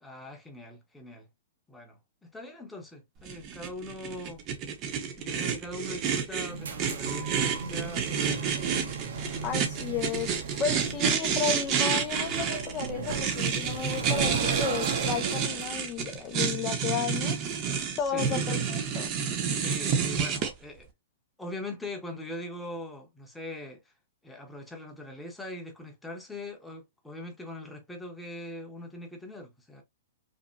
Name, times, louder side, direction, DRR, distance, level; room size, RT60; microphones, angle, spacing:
voice 1, 0.0-1.3 1.7-2.0 2.3-4.4 5.2-8.6 9.2-9.5 17.9-18.4 19.5-20.9 21.4-23.8 24.2-29.8, left 1 dB, 5° left, 0.8 m, -41 dB
sound 1, 3.3-20.5, right 7 dB, 25° right, 0.8 m, -29 dB
sound 2, 6.4-15.7, right 5 dB, 85° right, 1.0 m, -36 dB
voice 2, 9.2-17.4 18.0-19.1, left 7 dB, 20° left, 0.4 m, -33 dB
5.2 x 2.1 x 2.7 m
hypercardioid pair, 170°, 0 cm